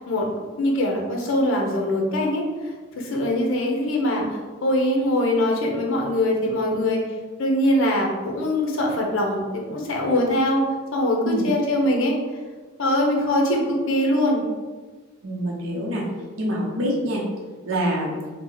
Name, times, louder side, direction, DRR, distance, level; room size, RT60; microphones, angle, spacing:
voice 1, 0.1-7.0 7.4-10.6 10.9-12.1 12.8-14.4, left 1 dB, 65° left, 0 dB, 0.6 m, -22 dB
voice 2, 15.2-16.0 16.4-17.2 17.6-18.2, equal, 80° right, -2 dB, 0.8 m, -25 dB
2.7 x 2.2 x 3.9 m, 1.4 s
head